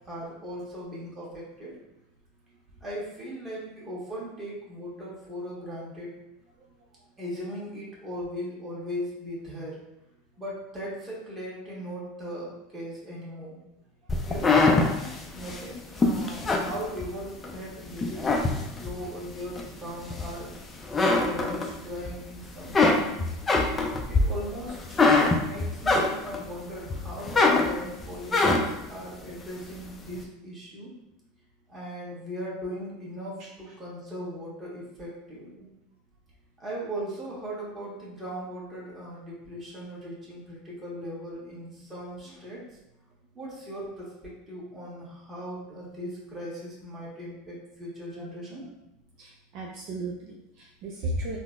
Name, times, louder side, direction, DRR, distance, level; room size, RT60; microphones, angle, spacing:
voice 1, 0.1-1.7 2.8-6.1 7.2-9.8 10.4-13.6 14.3-20.6 21.0-23.3 24.1-24.9 25.2-30.9 31.7-35.7 36.6-42.6 43.3-48.6, equal, 20° right, -6 dB, 1.3 m, -38 dB
sound 1, 14.1-17.5 17.9-19.0 19.6-20.5 20.8-22.1 22.4-26.5 26.9-28.9, left 3 dB, 20° left, 0.4 m, -23 dB
voice 2, 33.4-33.8 48.2-48.3 48.6-48.7 49.2-51.4, right 1 dB, 55° right, -1 dB, 0.4 m, -36 dB
3.7 x 2.0 x 2.4 m, 0.90 s
hypercardioid pair, 105°, 0 cm